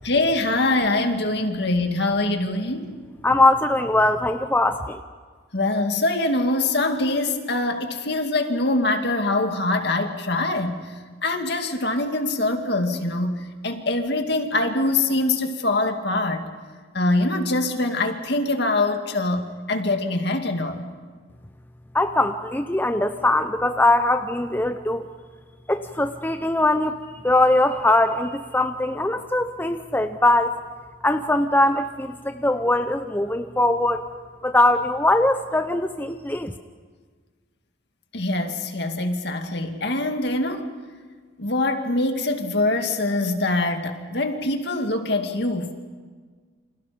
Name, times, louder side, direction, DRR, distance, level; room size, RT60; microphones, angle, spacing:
voice 1, 0.0-2.9 5.5-10.8 11.2-16.5 16.9-20.8 38.1-40.7 41.4-45.7, left 2 dB, 60° left, 5 dB, 2.3 m, -24 dB
voice 2, 3.2-5.0 21.9-25.1 25.7-27.0 27.2-30.6 31.0-34.1 34.4-36.5, left 2 dB, 10° left, 7 dB, 0.7 m, -21 dB
29.5 x 27.0 x 5.2 m, 1.5 s
head